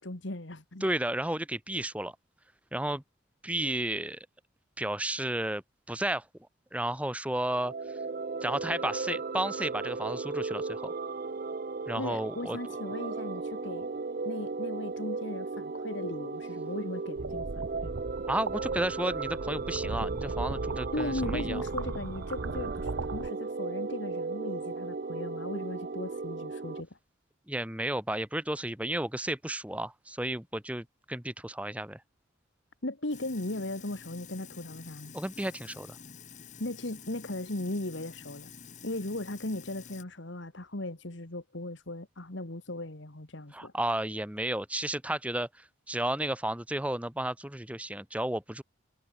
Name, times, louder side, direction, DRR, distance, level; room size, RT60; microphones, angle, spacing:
voice 1, 0.0-0.8 12.0-13.9 14.2-17.9 20.9-27.0 32.8-35.1 36.6-38.5 38.8-43.7, left 1 dB, 60° left, 1.9 m, -37 dB
voice 2, 0.8-2.1 2.7-3.0 3.4-4.3 4.8-5.6 5.9-6.2 6.7-7.7 8.4-10.9 11.9-12.6 18.3-21.6 27.5-32.0 35.1-36.0 43.5-48.6, right 1 dB, 5° right, 1.0 m, -32 dB
sound 1, 7.5-26.8, right 4 dB, 45° right, 0.5 m, -36 dB
sound 2, 17.2-23.3, right 3 dB, 80° right, 0.9 m, -38 dB
Sink (filling or washing), 33.1-40.0, left 6 dB, 35° left, 1.2 m, -49 dB
head